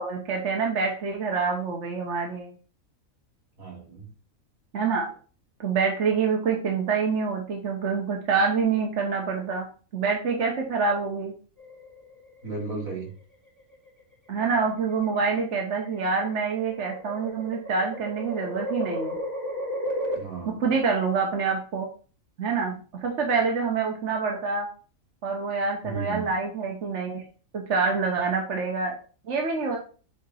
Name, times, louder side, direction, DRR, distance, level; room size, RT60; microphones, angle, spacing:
voice 1, 0.0-2.5 4.7-5.1 5.6-9.7 9.9-11.3 14.3-19.2 20.5-21.9 22.4-24.7 25.2-27.2 27.5-28.9 29.3-29.8, right 5 dB, 60° right, 1 dB, 1.3 m, -26 dB
voice 2, 3.6-4.1 12.4-13.1 20.1-20.7 25.8-26.3, right 4 dB, 80° right, -3 dB, 3.0 m, -34 dB
sound 1, 11.6-12.4 13.6-14.0 14.9-20.2, equal, 15° right, 2.1 m, -34 dB
8.6 x 3.6 x 4.2 m, 0.39 s
omnidirectional pair, 1.4 m